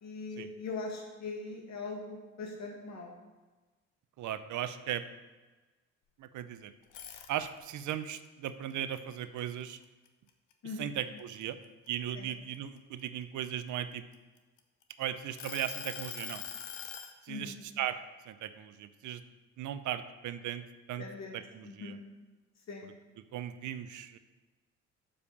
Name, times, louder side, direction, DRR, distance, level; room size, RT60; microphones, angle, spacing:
voice 1, 0.0-3.1 10.6-10.9 12.1-12.3 17.3-17.6 21.0-22.0 22.7-22.9, left 3 dB, 60° left, 0 dB, 2.1 m, -41 dB
voice 2, 4.2-5.1 6.2-6.7 7.3-9.8 10.8-11.6 11.9-14.0 15.0-16.4 17.2-18.0 18.3-19.2 19.6-21.1 21.3-22.0 23.2-24.2, right 11 dB, 75° right, 12 dB, 0.6 m, -37 dB
sound 1, 6.8-7.8 8.3-10.1 10.5-10.8 11.2-13.0 13.7-14.8 15.4-17.1, left 8 dB, 80° left, 0.9 m, -43 dB
7.1 x 5.0 x 7.0 m, 1.2 s
cardioid pair, 90°, 30 cm